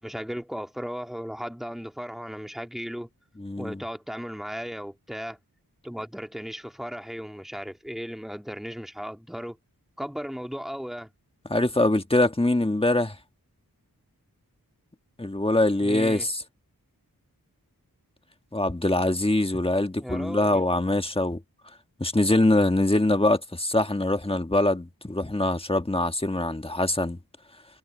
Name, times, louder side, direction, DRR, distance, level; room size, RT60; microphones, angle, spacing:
voice 1, 0.0-3.1 3.6-5.4 5.8-9.6 10.0-11.1 15.8-16.3 20.0-20.7, equal, ahead, 2.0 m, -36 dB
voice 2, 3.4-3.8 11.5-13.1 15.2-16.4 18.5-21.4 22.0-27.2, left 1 dB, 15° left, 1.5 m, -23 dB
wide cardioid pair, 80°, 36 cm